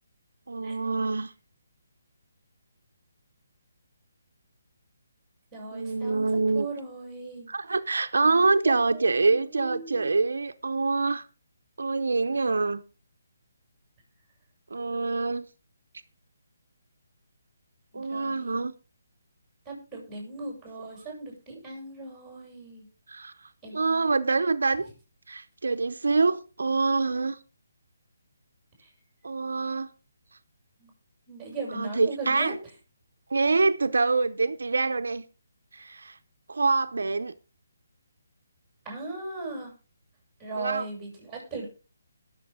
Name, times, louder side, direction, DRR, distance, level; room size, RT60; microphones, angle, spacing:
voice 1, 0.5-1.3 5.7-6.7 7.5-11.3 11.8-12.8 14.7-15.4 17.9-18.7 23.1-23.3 23.7-24.9 25.3-27.4 29.2-29.9 31.7-32.6 33.3-35.2 35.7-36.1 36.5-37.3 40.6-40.9, right 3 dB, 80° right, 0.7 m, -25 dB
voice 2, 5.5-6.3 6.5-7.5 8.6-10.1 17.9-18.6 19.6-22.9 23.6-23.8 30.8-30.9 31.3-32.5 38.8-39.7 40.4-41.6, right 3 dB, 5° right, 6.9 m, -38 dB
21.0 x 7.1 x 3.7 m
hypercardioid pair, 160°, 0 cm